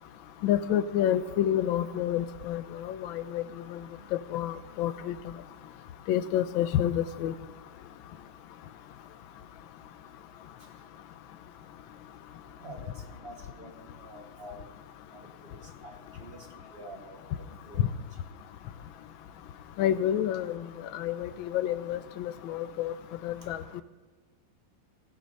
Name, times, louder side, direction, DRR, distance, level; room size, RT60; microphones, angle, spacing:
voice 1, 0.4-3.4 3.7-3.8 4.1-5.1 6.1-7.3 17.8-17.9 19.8-20.6 20.9-22.9 23.2-23.8, left 11 dB, 75° left, 12 dB, 1.4 m, -29 dB
voice 2, 12.6-13.7 14.0-14.6 15.8-16.4 16.7-17.2 17.7-17.8, right 1 dB, 40° right, 4 dB, 0.8 m, -46 dB
16.0 x 7.8 x 5.3 m, 1.3 s
omnidirectional pair, 2.3 m